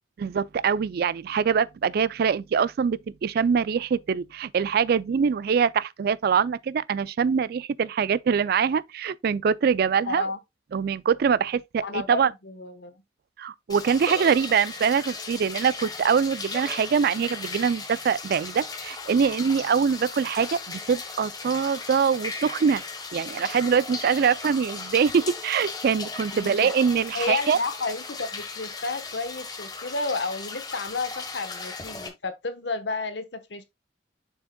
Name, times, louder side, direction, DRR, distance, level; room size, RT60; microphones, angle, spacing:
voice 1, 0.2-10.3 10.7-12.3 13.4-22.8 23.1-27.6, right 6 dB, 55° right, 0.3 m, -24 dB
voice 2, 10.0-10.4 11.8-13.0 26.3-26.7 27.1-33.6, left 3 dB, 75° left, 1.1 m, -31 dB
sound 1, 13.7-32.1, left 4 dB, 20° left, 1.2 m, -37 dB
7.1 x 6.3 x 2.2 m
head